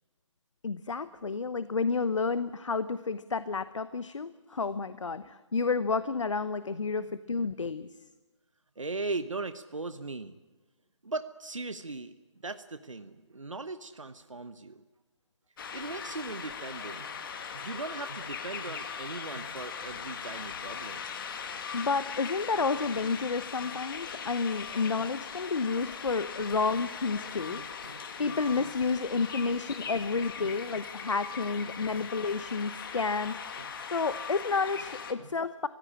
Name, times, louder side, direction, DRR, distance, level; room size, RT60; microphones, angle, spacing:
voice 1, 0.6-7.9 21.7-27.6 28.2-33.4 33.9-35.7, left 4 dB, 75° left, 14 dB, 0.9 m, -30 dB
voice 2, 8.8-10.3 11.0-12.2 12.4-14.8 15.7-17.1 17.5-21.1 23.7-23.8 26.1-26.2 27.4-30.1 30.4-30.5 31.6-31.7 31.9-32.1 33.6-33.7 35.2-35.3, right 3 dB, 90° right, 10 dB, 1.0 m, -40 dB
sound 1, 15.6-35.1, left 6 dB, 45° left, 2.1 m, -40 dB
24.0 x 16.5 x 10.0 m, 1.2 s
figure-of-eight pair, 145°, 16 cm